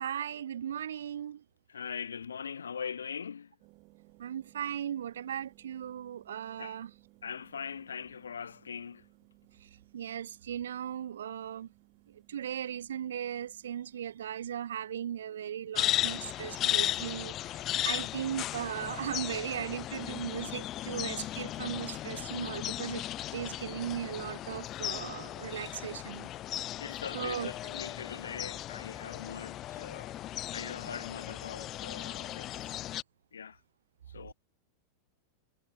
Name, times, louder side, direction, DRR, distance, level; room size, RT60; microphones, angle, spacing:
voice 1, 0.0-1.4 4.2-6.9 9.6-11.7 12.3-23.1 23.3-26.3 27.1-27.5, right 9 dB, 65° right, 0.6 m, -37 dB
voice 2, 1.7-3.5 6.6-6.8 7.2-9.0 26.8-30.2 30.5-32.8 33.3-33.6 34.1-34.3, left 6 dB, 70° left, 1.0 m, -41 dB
sound 1, 3.6-20.5, right 26 dB, 40° right, 2.4 m, -64 dB
sound 2, 15.7-33.0, left 13 dB, 35° left, 0.3 m, -36 dB
figure-of-eight pair, 90°, 0 cm